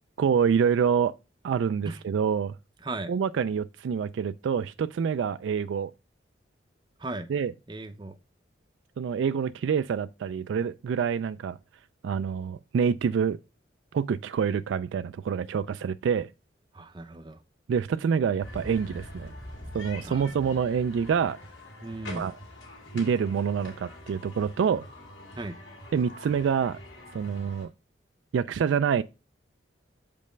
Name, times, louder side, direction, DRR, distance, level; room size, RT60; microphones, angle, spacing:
voice 1, 0.2-1.1 1.4-2.6 3.1-5.9 7.3-7.5 9.0-11.6 12.0-13.4 13.9-16.3 17.7-19.3 19.7-21.4 22.1-22.3 22.9-24.9 25.9-26.8 27.1-27.7 28.3-29.0, right 7 dB, 75° right, 0.3 m, -26 dB
voice 2, 7.7-8.2 16.7-17.4 20.0-20.3 21.8-22.3 25.4-25.6, right 2 dB, 25° right, 0.6 m, -36 dB
sound 1, 18.4-27.7, left 1 dB, 80° left, 2.8 m, -44 dB
6.6 x 5.2 x 3.2 m
head